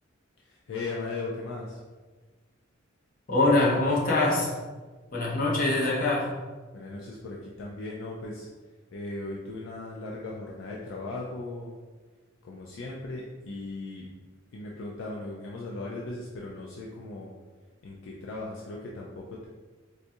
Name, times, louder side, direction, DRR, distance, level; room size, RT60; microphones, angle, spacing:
voice 1, 0.5-1.8 6.7-8.5 8.9-11.8 12.4-14.1 14.5-17.3 17.8-19.5, left 2 dB, 65° left, -3 dB, 0.4 m, -37 dB
voice 2, 3.3-4.5 5.1-6.3, left 2 dB, 45° left, -4 dB, 0.8 m, -23 dB
4.0 x 2.3 x 2.6 m, 1.3 s
head